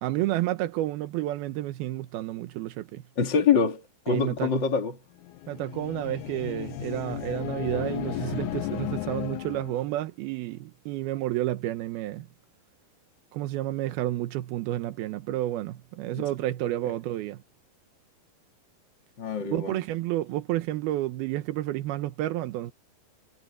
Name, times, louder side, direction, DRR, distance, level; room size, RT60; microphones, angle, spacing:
voice 1, 0.0-3.0 4.1-4.5 5.5-12.3 13.3-17.4 19.4-22.7, right 15 dB, 85° right, 2.9 m, -30 dB
voice 2, 3.2-5.0 16.1-16.2 19.2-19.8, left 6 dB, 35° left, 2.4 m, -25 dB
sound 1, 5.2-9.9, left 15 dB, 70° left, 2.0 m, -34 dB
omnidirectional pair, 4.3 m